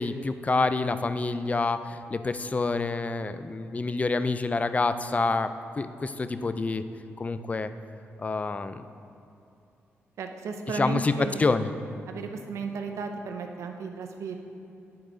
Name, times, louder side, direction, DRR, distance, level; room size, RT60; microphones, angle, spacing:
voice 1, 0.0-5.5 5.8-6.8 7.2-7.7 8.2-8.8 10.7-11.1 11.4-11.7, left 3 dB, 30° left, 11 dB, 0.4 m, -27 dB
voice 2, 10.2-11.4 12.1-14.4, right 4 dB, 80° right, 5 dB, 0.6 m, -34 dB
9.6 x 4.7 x 3.9 m, 2.8 s
cardioid pair, 70°, 5 cm